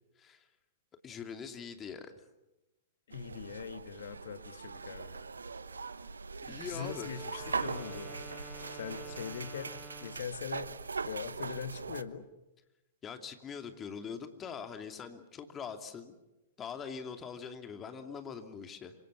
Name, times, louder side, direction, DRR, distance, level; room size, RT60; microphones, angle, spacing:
voice 1, 0.2-0.5 1.0-2.3 6.5-7.2 13.0-16.2 16.6-19.0, left 6 dB, 20° left, 6 dB, 2.6 m, -43 dB
voice 2, 3.1-5.2 6.7-8.1 8.7-9.7 10.0-10.8 11.0-12.2, left 7 dB, 60° left, 10 dB, 2.0 m, -41 dB
sound 1, 3.1-12.0, right 4 dB, 80° right, 1.0 m, -41 dB
Wind instrument woodwind instrument, 6.8-10.4, equal, 5° left, 1.2 m, -50 dB
26.5 x 25.5 x 7.0 m, 0.99 s
figure-of-eight pair, 105°, 0 cm